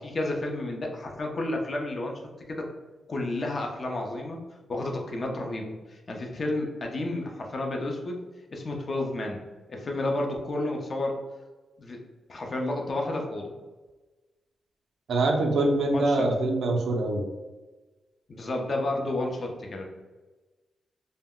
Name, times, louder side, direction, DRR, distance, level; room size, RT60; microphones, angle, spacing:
voice 1, 0.0-2.2 2.5-2.7 3.1-4.4 4.7-8.2 8.5-9.4 9.7-11.2 11.8-12.0 12.3-13.5 15.9-16.3 18.3-19.9, left 2 dB, 45° left, 1 dB, 0.5 m, -31 dB
voice 2, 15.1-17.2, right 2 dB, 75° right, 2 dB, 0.4 m, -24 dB
2.1 x 2.1 x 3.6 m, 1.2 s
cardioid pair, 90°, 0 cm